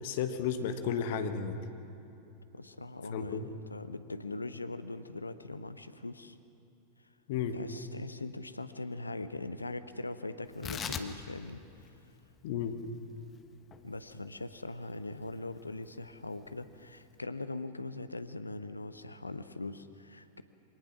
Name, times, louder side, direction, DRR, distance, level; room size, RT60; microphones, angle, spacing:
voice 1, 0.0-1.6 3.1-3.5 7.3-7.6 12.4-12.8, left 7 dB, 55° left, 8 dB, 1.3 m, -33 dB
voice 2, 2.5-6.4 7.5-11.6 13.8-20.4, left 2 dB, 80° left, 12 dB, 0.8 m, -41 dB
Tearing, 10.5-17.2, left 7 dB, 25° left, 1.2 m, -45 dB
24.0 x 18.5 x 6.1 m, 2.9 s
figure-of-eight pair, 90°, 0 cm